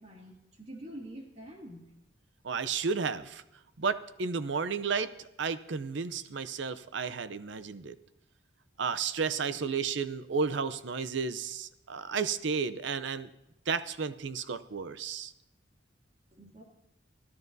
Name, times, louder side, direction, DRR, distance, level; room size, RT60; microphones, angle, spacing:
voice 1, 0.0-1.9 16.3-16.6, right 1 dB, 35° right, -1 dB, 2.4 m, -46 dB
voice 2, 2.4-3.4 3.8-8.0 8.8-13.3 13.7-15.3, right 5 dB, 65° right, 14 dB, 0.6 m, -32 dB
23.5 x 14.5 x 2.7 m, 0.88 s
head